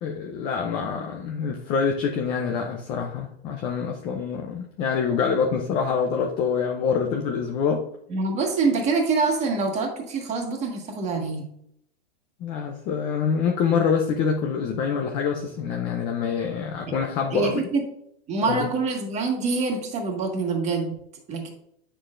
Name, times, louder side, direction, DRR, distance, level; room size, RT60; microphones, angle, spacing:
voice 1, 0.0-7.8 12.4-17.6 18.4-18.7, left 6 dB, 15° left, 2 dB, 0.4 m, -25 dB
voice 2, 8.1-11.4 16.9-17.0 17.3-17.8 18.3-20.9 21.3-21.5, right 4 dB, 20° right, 2 dB, 1.6 m, -25 dB
9.2 x 6.5 x 2.5 m, 0.71 s
supercardioid pair, 155°, 33 cm